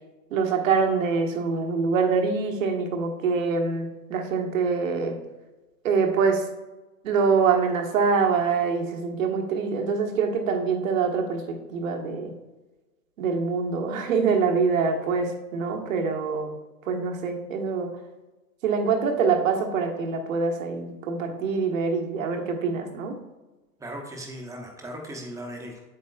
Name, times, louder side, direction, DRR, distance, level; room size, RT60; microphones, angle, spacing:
voice 1, 0.3-5.2 5.8-6.5 7.0-12.3 13.2-16.5 16.9-17.9 18.6-23.2, right 5 dB, 55° right, 3 dB, 1.5 m, -25 dB
voice 2, 23.8-25.8, equal, 5° right, 1 dB, 1.0 m, -37 dB
8.3 x 8.0 x 2.4 m, 1.1 s
figure-of-eight pair, 115°, 47 cm